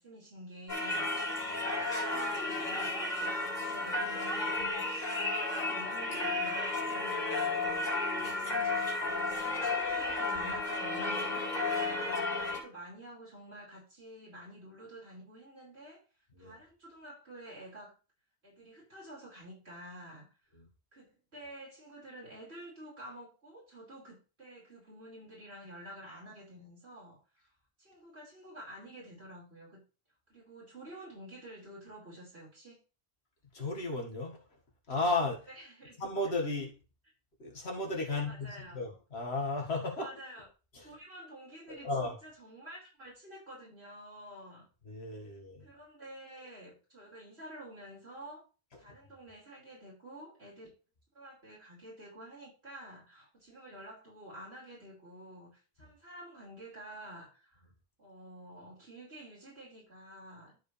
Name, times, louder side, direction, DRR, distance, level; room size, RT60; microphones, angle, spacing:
voice 1, 0.0-2.9 3.2-16.0 16.4-18.0 18.4-20.3 20.9-27.2 27.8-29.8 30.3-32.8 35.6-36.0 38.1-38.8 40.0-40.4 40.8-44.6 45.6-48.4 48.8-50.8 51.1-57.6 58.0-60.6, right 1 dB, 80° right, 5.5 m, -50 dB
Singing / Church bell, 0.7-12.6, left 2 dB, 45° left, 2.8 m, -33 dB
voice 2, 33.5-34.6 34.9-35.5 36.0-36.8 37.4-40.1 40.7-41.0 41.7-42.2 44.8-45.7, left 2 dB, 80° left, 2.2 m, -35 dB
13.0 x 4.9 x 3.4 m
omnidirectional pair, 1.1 m